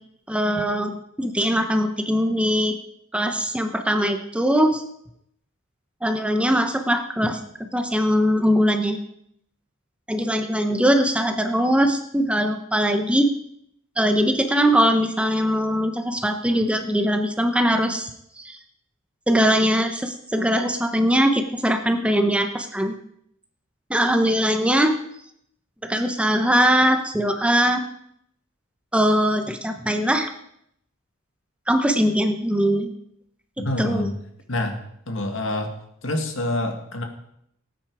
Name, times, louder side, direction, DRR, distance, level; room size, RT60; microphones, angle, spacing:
voice 1, 0.3-2.8 3.1-4.8 6.0-7.4 7.7-9.0 10.1-13.3 14.0-18.1 18.4-18.6 19.3-23.0 23.9-25.0 25.8-27.8 28.9-30.3 31.7-32.9 33.8-34.1, equal, 5° right, 6 dB, 0.8 m, -21 dB
voice 2, 33.6-34.2 34.5-34.8 35.1-35.7 36.0-37.0, left 1 dB, 65° left, 4 dB, 2.0 m, -26 dB
18.0 x 9.1 x 4.8 m, 0.74 s
head